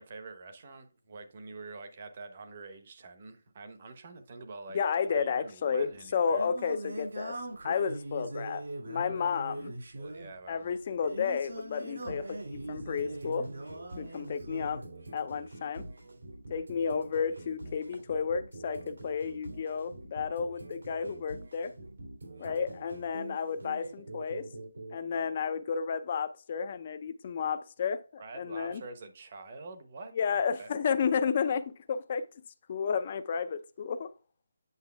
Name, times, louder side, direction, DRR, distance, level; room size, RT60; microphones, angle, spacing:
voice 1, 0.0-4.8 5.1-6.5 10.0-10.8 28.2-30.7, right 3 dB, 30° right, 0.9 m, -46 dB
voice 2, 4.7-7.4 7.6-9.7 10.5-13.5 14.0-14.8 15.1-15.9 16.5-21.7 22.4-24.5 24.9-28.8 30.1-32.3 32.7-34.1, left 6 dB, 25° left, 0.4 m, -32 dB
Singing, 5.8-14.9, right 1 dB, 65° right, 2.2 m, -41 dB
sound 1, 12.0-25.0, right 2 dB, 85° right, 2.8 m, -46 dB
8.1 x 6.4 x 2.2 m
hypercardioid pair, 175°, 0 cm